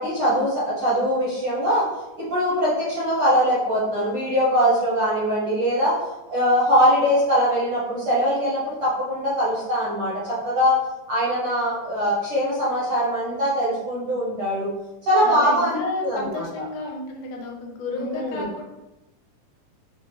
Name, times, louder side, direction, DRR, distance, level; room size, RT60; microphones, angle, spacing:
voice 1, 0.0-1.8 2.2-5.9 6.3-10.7 11.1-14.7 15.0-16.5 17.9-18.5, equal, 60° right, -8 dB, 1.5 m, -22 dB
voice 2, 15.2-18.6, left 3 dB, 85° left, 1 dB, 2.1 m, -32 dB
5.6 x 2.4 x 3.1 m, 0.99 s
omnidirectional pair, 3.7 m